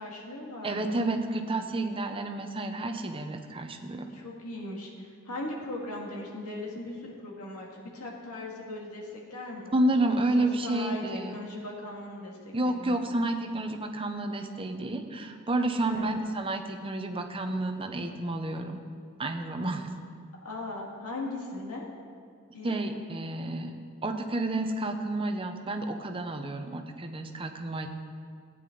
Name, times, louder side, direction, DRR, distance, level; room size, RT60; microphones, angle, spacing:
voice 1, 0.0-1.1 4.1-9.8 10.1-12.4 12.6-13.0 15.6-16.1 20.4-21.9 22.5-22.7, left 2 dB, 85° left, -2 dB, 2.1 m, -39 dB
voice 2, 0.6-4.0 9.7-11.4 12.5-18.8 19.2-19.9 22.6-23.7 24.0-27.9, right 2 dB, 25° right, 5 dB, 0.7 m, -30 dB
15.0 x 9.4 x 3.9 m, 2.2 s
head